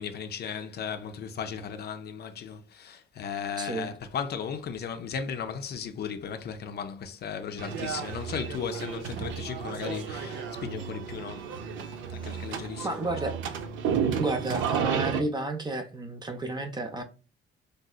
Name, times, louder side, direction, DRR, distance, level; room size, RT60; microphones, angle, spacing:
voice 1, 0.0-11.5 12.1-13.0, left 7 dB, 55° left, 0.4 m, -36 dB
voice 2, 3.6-3.9 12.8-13.4 14.2-17.0, right 2 dB, 20° right, 0.5 m, -31 dB
sound 1, 7.6-15.2, right 7 dB, 75° right, 0.5 m, -32 dB
3.3 x 2.7 x 2.3 m
cardioid pair, 90°, 20 cm